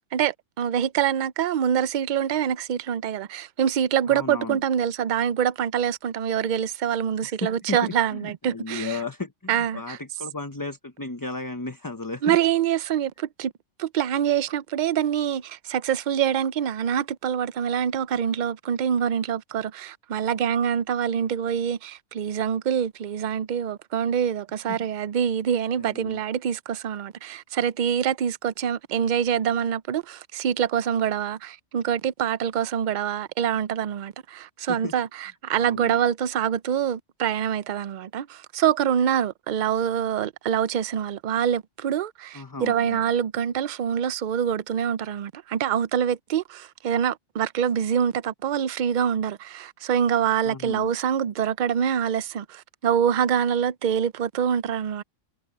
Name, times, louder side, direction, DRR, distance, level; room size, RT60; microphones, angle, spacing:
voice 1, 0.1-9.0 9.5-10.0 12.2-13.5 13.8-55.0, right 9 dB, 55° right, 0.6 m, -25 dB
voice 2, 4.1-4.6 7.4-12.4 24.7-24.8 25.8-26.2 34.7-34.9 35.6-36.0 42.3-43.0 50.4-50.9, left 3 dB, 20° left, 0.9 m, -34 dB
omnidirectional pair, 1.3 m